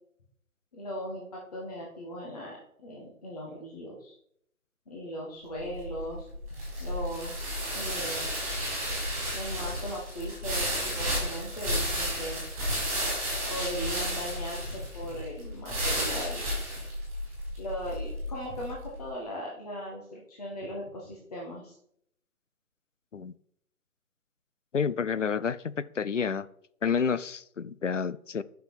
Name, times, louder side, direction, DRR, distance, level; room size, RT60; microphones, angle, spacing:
voice 1, 0.7-4.2 4.9-6.3 6.8-8.3 9.3-12.4 13.5-16.4 17.6-21.7, equal, 25° left, -3 dB, 1.3 m, -38 dB
sound 1, 5.5-18.8, equal, 15° right, 3.6 m, -32 dB
voice 2, 24.7-26.5 26.8-28.4, left 6 dB, 55° left, 17 dB, 0.5 m, -29 dB
7.2 x 5.9 x 5.9 m, 0.69 s
figure-of-eight pair, 150°, 45 cm